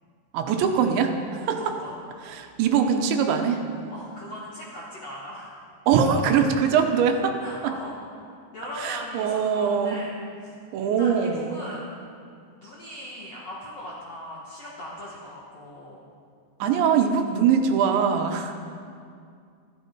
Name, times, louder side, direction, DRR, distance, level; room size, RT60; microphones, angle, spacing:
voice 1, 0.3-1.1 1.5-1.6 2.3-3.6 5.9-7.3 8.8-10.0 10.7-11.5 16.6-18.5, right 7 dB, 75° right, 4 dB, 3.1 m, -22 dB
voice 2, 1.3-1.9 3.9-5.6 7.4-8.0 8.3-11.9 12.6-16.0, left 1 dB, 60° left, -6 dB, 1.7 m, -40 dB
15.0 x 14.5 x 4.6 m, 2.3 s
omnidirectional pair, 5.5 m